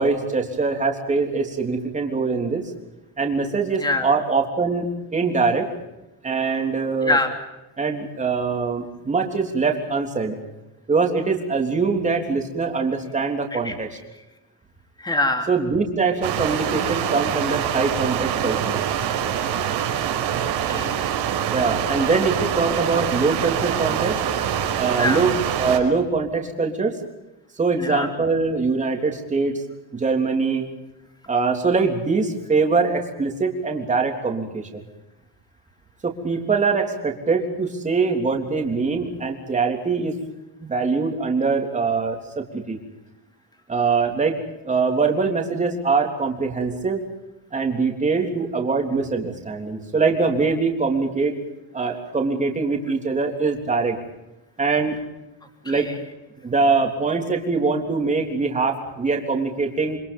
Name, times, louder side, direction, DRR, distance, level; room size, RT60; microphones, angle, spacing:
voice 1, 0.0-2.7 3.2-5.7 6.2-7.2 7.8-10.4 10.9-14.0 15.5-18.8 21.5-24.2 24.8-27.0 27.6-29.6 29.9-30.7 31.3-34.8 36.0-40.1 40.6-42.8 43.7-47.0 47.5-51.4 51.7-54.0 54.6-55.0 55.6-55.9 56.4-60.0, right 4 dB, 20° right, 2 dB, 3.4 m, -23 dB
voice 2, 3.8-4.1 7.0-7.3 13.5-13.7 15.0-15.5 20.4-21.1 25.0-25.2 27.8-28.1 55.6-56.0, left 2 dB, 10° left, 4 dB, 3.2 m, -24 dB
sound 1, 16.2-25.8, right 9 dB, 85° right, 5.4 m, -25 dB
27.0 x 26.5 x 5.5 m, 0.94 s
cardioid pair, 180°, 40 cm